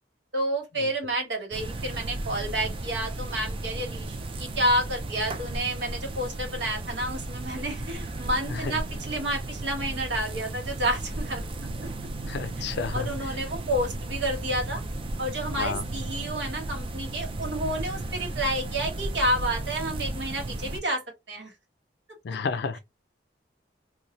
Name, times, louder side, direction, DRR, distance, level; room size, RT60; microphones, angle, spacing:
voice 1, 0.3-11.5 12.9-14.8 15.2-21.5, right 1 dB, 75° right, 1.3 m, -30 dB
sound 1, 1.5-20.8, right 2 dB, 30° right, 0.4 m, -34 dB
voice 2, 8.5-8.8 12.3-13.4 15.6-15.9 22.2-22.8, left 5 dB, 65° left, 0.4 m, -32 dB
2.6 x 2.3 x 3.0 m
head